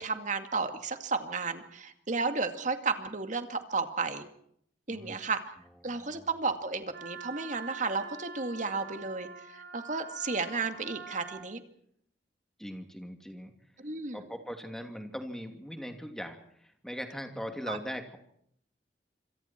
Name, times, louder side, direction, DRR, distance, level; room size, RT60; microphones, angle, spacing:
voice 1, 0.0-4.2 4.9-5.4 5.8-9.3 9.5-11.6 13.8-14.2 17.7-17.8, right 4 dB, 45° right, 7 dB, 2.2 m, -33 dB
voice 2, 5.8-6.3 12.6-13.5 14.1-18.2, equal, 5° left, 5 dB, 2.8 m, -40 dB
Wind instrument woodwind instrument, 6.9-11.5, right 5 dB, 70° right, 5.4 m, -45 dB
26.5 x 26.5 x 4.5 m, 0.68 s
head